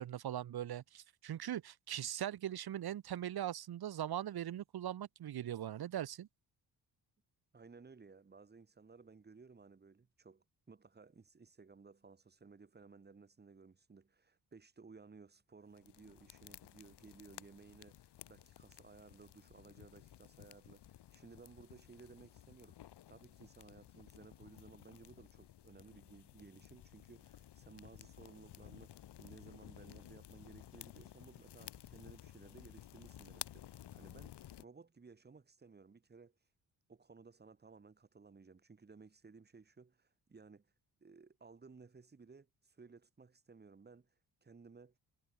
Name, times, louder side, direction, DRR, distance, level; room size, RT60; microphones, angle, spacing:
voice 1, 0.0-6.3, right 11 dB, 65° right, 2.5 m, -40 dB
voice 2, 7.5-36.5 36.9-40.7 41.0-45.0, right 4 dB, 25° right, 7.2 m, -59 dB
sound 1, 15.7-34.7, left 11 dB, 80° left, 5.3 m, -55 dB
wide cardioid pair, 175°, 40 cm